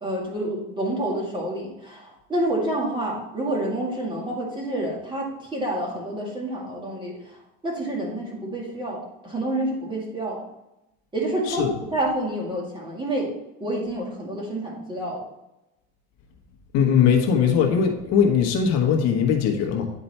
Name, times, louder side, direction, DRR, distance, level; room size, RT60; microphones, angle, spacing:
voice 1, 0.0-7.1 7.6-10.4 11.1-13.3 13.6-15.2, right 1 dB, 15° right, -2 dB, 2.0 m, -28 dB
voice 2, 16.7-19.9, left 7 dB, 60° left, 3 dB, 1.2 m, -20 dB
9.7 x 4.6 x 4.2 m, 0.92 s
cardioid pair, 155°, 30 cm